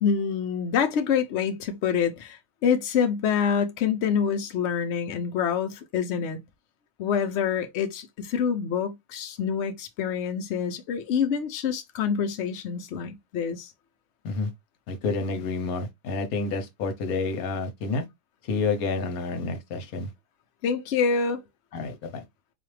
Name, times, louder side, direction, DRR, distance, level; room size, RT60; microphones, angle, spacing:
voice 1, 0.0-6.4 7.0-13.7 20.6-21.4, left 7 dB, 60° left, 0.8 m, -26 dB
voice 2, 14.9-18.0 18.5-20.1 21.7-22.2, left 3 dB, 80° left, 1.3 m, -29 dB
4.1 x 2.4 x 3.2 m
omnidirectional pair, 1.5 m